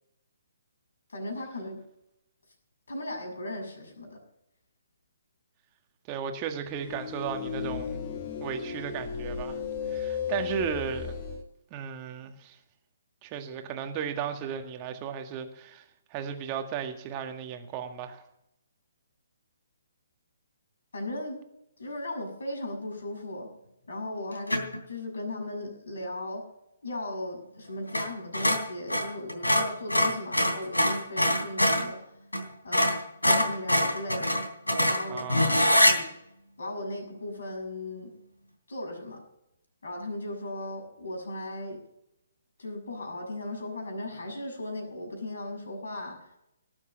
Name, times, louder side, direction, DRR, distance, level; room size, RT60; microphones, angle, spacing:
voice 1, 1.1-1.8 2.9-4.2 20.9-21.4 21.8-23.5 23.9-26.4 26.8-32.0 32.6-32.8 33.3-34.3 34.8-35.2 35.7-36.0 36.6-38.1 38.7-39.2 39.8-41.8 42.6-46.2, left 1 dB, 65° left, 1 dB, 6.6 m, -37 dB
voice 2, 6.1-8.0 8.4-11.2 11.7-12.6 13.2-18.2 35.1-35.6, right 8 dB, 25° right, 5 dB, 1.8 m, -35 dB
sound 1, 6.7-11.4, left 7 dB, 35° left, 2.2 m, -34 dB
sound 2, 24.5-24.8 27.9-28.1 28.3-31.9 32.3-32.4 32.7-36.0, left 1 dB, 85° left, 3.1 m, -24 dB
18.5 x 7.3 x 7.0 m, 0.82 s
figure-of-eight pair, 135°, 0 cm